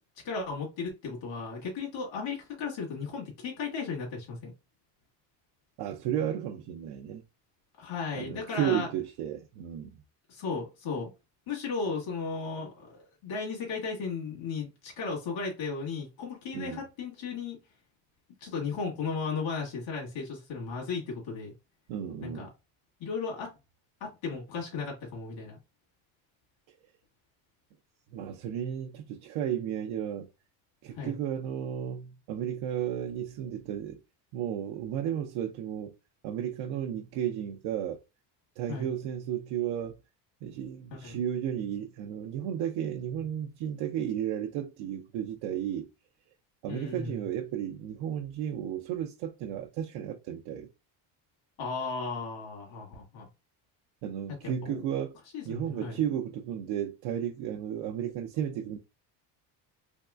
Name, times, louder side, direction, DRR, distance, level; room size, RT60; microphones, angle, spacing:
voice 1, 0.2-4.5 7.8-8.9 10.3-11.1 11.5-17.6 18.4-21.5 22.2-22.5 23.0-23.5 24.0-25.6 31.0-31.2 38.7-38.9 40.9-41.2 46.7-47.2 51.6-53.3 54.4-54.8 55.3-56.0, left 4 dB, 70° left, 1.8 m, -35 dB
voice 2, 5.8-7.2 8.1-10.0 16.5-16.8 21.9-22.5 28.1-30.3 30.8-34.0 34.3-35.9 36.2-38.0 38.6-40.0 40.4-45.9 46.6-50.7 54.0-55.1 55.4-58.8, right 10 dB, 70° right, 0.6 m, -33 dB
3.5 x 3.1 x 2.4 m
cardioid pair, 130°, 47 cm